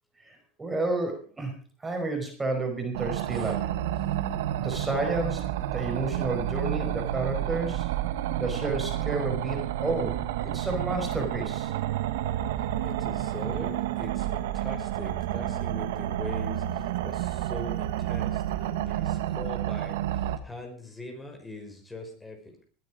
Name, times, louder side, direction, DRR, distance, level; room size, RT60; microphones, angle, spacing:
voice 1, 0.2-1.5 1.8-3.7 4.6-7.9 8.4-11.7, right 2 dB, 15° right, 3 dB, 5.1 m, -31 dB
sound 1, 2.9-20.4, right 12 dB, 85° right, 1.3 m, -30 dB
voice 2, 12.5-22.6, left 1 dB, 10° left, 3 dB, 5.3 m, -42 dB
20.5 x 9.8 x 5.0 m, 0.41 s
supercardioid pair, 100°, 0 cm